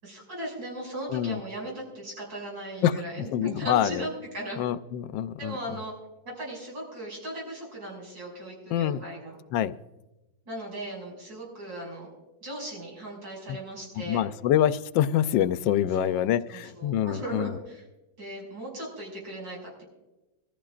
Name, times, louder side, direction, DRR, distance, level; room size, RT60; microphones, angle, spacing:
voice 1, 0.0-4.6 5.4-5.9 6.3-9.4 10.5-12.1 12.4-14.3 16.0-17.9 18.2-19.8, right 1 dB, 80° right, -3 dB, 6.9 m, -38 dB
voice 2, 2.8-4.1 4.6-5.5 8.7-9.0 9.5-9.7 13.5-13.6 14.0-17.5, left 11 dB, 85° left, 13 dB, 1.3 m, -26 dB
24.5 x 14.5 x 2.5 m, 1.1 s
omnidirectional pair, 2.0 m